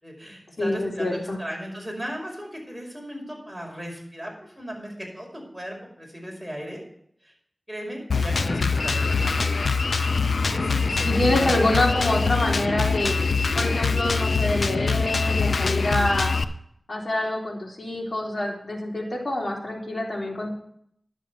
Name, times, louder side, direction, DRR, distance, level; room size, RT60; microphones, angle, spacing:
voice 1, 0.0-6.8 7.2-7.3 7.7-9.4 10.5-12.1, equal, 5° right, -1 dB, 5.5 m, -36 dB
voice 2, 0.6-1.4 11.0-13.2 13.5-16.3 16.9-20.5, left 1 dB, 50° left, -2 dB, 3.6 m, -26 dB
Drum kit, 8.1-16.4, left 4 dB, 85° left, 0.5 m, -23 dB
11.0 x 7.2 x 7.0 m, 0.68 s
wide cardioid pair, 45°, 0 cm